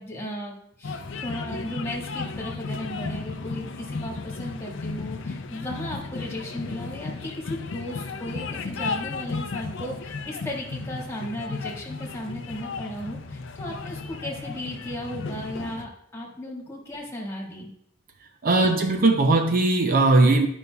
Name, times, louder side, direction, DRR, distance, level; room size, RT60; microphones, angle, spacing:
voice 1, 0.0-17.7 18.6-18.9, left 1 dB, 15° left, -2 dB, 1.6 m, -36 dB
sound 1, 0.8-15.8, left 4 dB, 65° left, 0.5 m, -34 dB
voice 2, 18.4-20.5, right 2 dB, 45° right, 5 dB, 0.5 m, -19 dB
11.0 x 5.3 x 2.3 m, 0.70 s
head